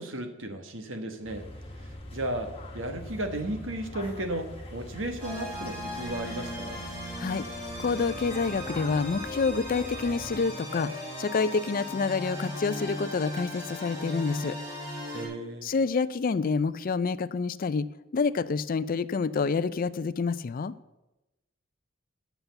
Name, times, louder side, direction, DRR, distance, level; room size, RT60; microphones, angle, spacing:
voice 1, 0.0-1.5 1.8-6.8 15.1-15.7, right 1 dB, 75° right, 6 dB, 1.4 m, -34 dB
sound 1, 1.2-10.4, left 1 dB, 30° left, 1.5 m, -43 dB
sound 2, 5.2-15.3, left 1 dB, 20° right, 3.8 m, -37 dB
voice 2, 7.8-10.9 11.2-14.6 15.6-17.9 18.1-20.7, left 4 dB, 45° left, 15 dB, 0.4 m, -28 dB
8.0 x 6.9 x 8.0 m, 0.99 s
head